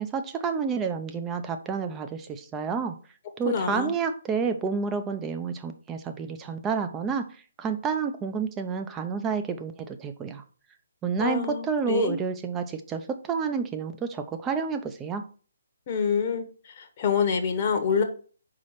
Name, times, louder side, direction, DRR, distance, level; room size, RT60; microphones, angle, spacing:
voice 1, 0.0-3.0 3.4-7.3 7.6-10.4 11.0-15.2, right 6 dB, 15° right, 7 dB, 0.7 m, -29 dB
voice 2, 3.4-3.9 11.2-12.2 15.9-18.0, left 6 dB, 35° left, 4 dB, 1.0 m, -26 dB
4.9 x 4.1 x 5.6 m, 0.40 s
figure-of-eight pair, 145°, 0 cm